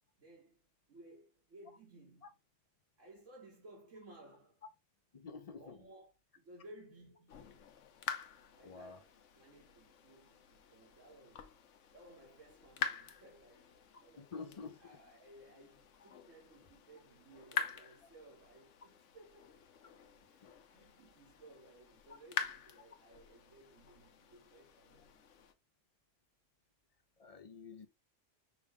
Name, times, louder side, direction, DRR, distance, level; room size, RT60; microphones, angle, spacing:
voice 1, 0.2-2.4 3.0-4.6 5.6-7.5 8.5-11.5 11.9-25.2, right 1 dB, 80° right, 1.7 m, -59 dB
voice 2, 5.1-5.8 8.6-9.0 14.2-14.8 16.0-16.1 27.2-27.9, left 5 dB, 45° left, 0.4 m, -48 dB
sound 1, 7.3-25.5, left 8 dB, 75° left, 1.0 m, -46 dB
5.7 x 2.2 x 3.4 m
omnidirectional pair, 1.3 m